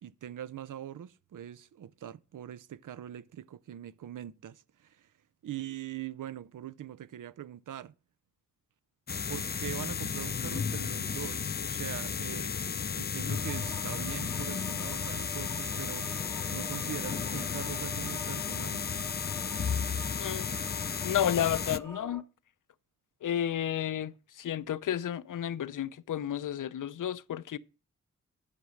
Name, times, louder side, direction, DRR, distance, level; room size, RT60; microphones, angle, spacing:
voice 1, 0.0-5.1 5.4-7.9 9.3-12.6 13.0-16.1 16.5-18.8, right 11 dB, 85° right, 0.5 m, -42 dB
sound 1, 9.1-21.8, left 6 dB, 35° left, 0.4 m, -34 dB
sound 2, 13.3-22.2, equal, 5° left, 0.8 m, -47 dB
voice 2, 20.2-20.5 21.0-22.2 23.2-27.6, left 10 dB, 80° left, 0.6 m, -32 dB
11.0 x 6.0 x 6.3 m
wide cardioid pair, 90°, 31 cm